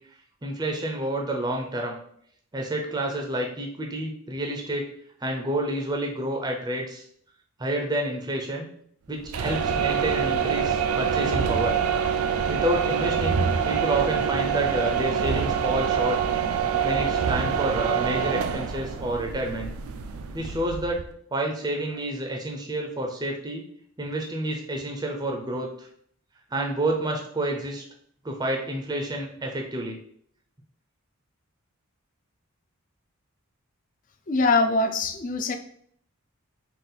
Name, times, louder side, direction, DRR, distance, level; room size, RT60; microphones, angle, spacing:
voice 1, 0.4-2.0 2.5-4.9 5.2-7.0 7.6-8.7 9.1-11.8 12.5-16.2 16.8-19.7 20.3-21.0 21.3-23.6 24.0-25.9 26.5-27.8 28.2-30.0, right 1 dB, 20° right, 1 dB, 0.5 m, -29 dB
sound 1, 9.2-21.1, right 7 dB, 80° right, 0.4 m, -25 dB
voice 2, 34.3-35.6, left 3 dB, 40° left, 6 dB, 0.4 m, -23 dB
3.7 x 2.4 x 4.0 m, 0.63 s
head